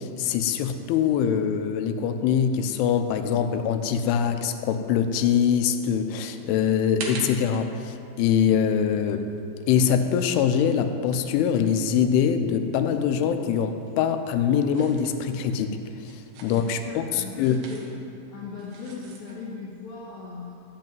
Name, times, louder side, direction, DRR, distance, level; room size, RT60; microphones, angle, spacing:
voice 1, 0.0-9.3 9.7-15.8 16.1-17.6, left 8 dB, 85° left, 8 dB, 3.1 m, -23 dB
sound 1, 6.5-12.4 12.7-19.4, right 4 dB, 70° right, 2.5 m, -45 dB
voice 2, 16.8-17.9 18.3-20.5, left 4 dB, 70° left, -7 dB, 1.8 m, -38 dB
14.5 x 5.3 x 9.0 m, 2.6 s
omnidirectional pair, 5.6 m